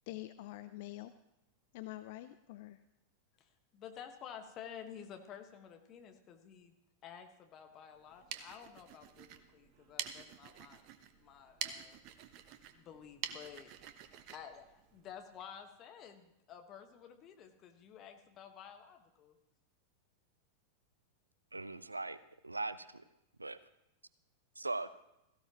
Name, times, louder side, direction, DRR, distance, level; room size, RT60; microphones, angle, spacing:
voice 1, 0.1-1.1 1.7-2.8, left 16 dB, 50° left, 11 dB, 0.5 m, -46 dB
voice 2, 3.4-6.7 7.0-10.8 11.1-12.0 12.7-13.7 14.3-19.4, left 8 dB, 35° left, 6 dB, 1.4 m, -52 dB
sound 1, 8.0-15.5, right 9 dB, 40° right, 1.0 m, -47 dB
voice 3, 21.5-22.2 22.4-23.0 23.4-23.6 24.6-24.9, right 2 dB, 80° right, 16 dB, 0.6 m, -39 dB
17.0 x 15.5 x 3.0 m, 0.90 s
figure-of-eight pair, 90°, 0 cm